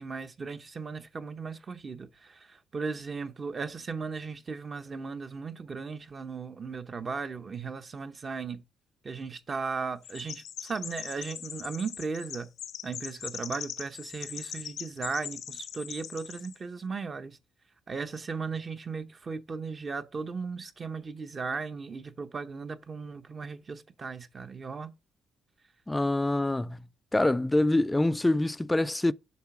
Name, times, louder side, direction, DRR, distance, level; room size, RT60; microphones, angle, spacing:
voice 1, 0.0-8.6 9.0-12.5 12.8-17.4 17.9-24.9, right 4 dB, 35° right, 0.8 m, -36 dB
Chirp tweet, 10.0-16.6, left 9 dB, 70° left, 0.8 m, -41 dB
voice 2, 25.9-26.8 27.1-29.1, left 2 dB, 10° left, 0.3 m, -25 dB
7.2 x 3.4 x 5.9 m
cardioid pair, 90°, 0 cm